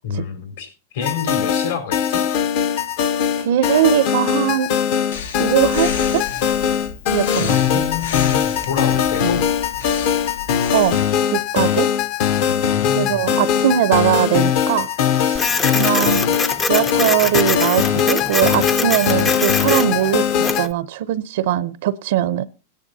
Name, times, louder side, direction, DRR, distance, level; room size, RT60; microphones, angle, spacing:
voice 1, 0.0-2.3 7.4-9.5 12.4-13.4, left 6 dB, 70° left, 4 dB, 4.1 m, -28 dB
sound 1, 1.0-20.7, left 8 dB, 45° left, 0.8 m, -20 dB
voice 2, 3.4-4.7 5.4-6.2 7.1-7.8 9.2-9.3 10.7-11.0 11.3-11.9 13.0-16.2 16.6-20.2 20.5-22.5, right 12 dB, 60° right, 15 dB, 0.6 m, -20 dB
Breathing, 5.1-11.1, left 6 dB, 85° left, 1.4 m, -32 dB
Printer, 15.4-20.7, left 3 dB, 15° left, 0.5 m, -24 dB
18.5 x 10.0 x 2.7 m, 0.31 s
supercardioid pair, 160°, 0 cm